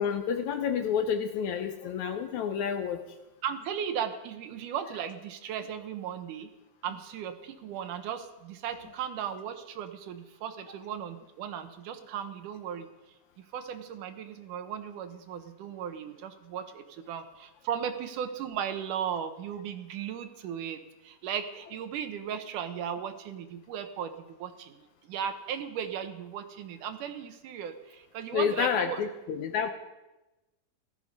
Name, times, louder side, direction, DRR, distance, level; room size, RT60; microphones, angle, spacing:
voice 1, 0.0-3.1 28.3-29.7, left 7 dB, 70° left, 8 dB, 1.9 m, -29 dB
voice 2, 3.4-6.5 6.8-12.9 13.4-24.8 25.1-29.0, right 8 dB, 75° right, 9 dB, 2.4 m, -36 dB
16.5 x 13.0 x 5.3 m, 1.0 s
omnidirectional pair, 3.9 m